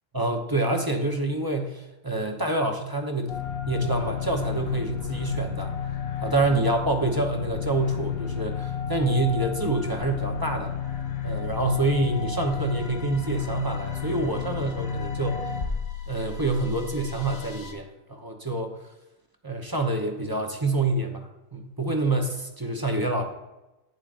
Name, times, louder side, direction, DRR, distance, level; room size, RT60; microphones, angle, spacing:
voice 1, 0.1-3.4 3.7-5.7 6.2-10.7 11.2-15.5 16.1-18.8 19.4-23.2, right 2 dB, 20° right, 3 dB, 0.7 m, -27 dB
sound 1, 3.3-17.7, left 6 dB, 55° left, 1.1 m, -32 dB
10.5 x 9.0 x 2.5 m, 1.0 s
omnidirectional pair, 1.3 m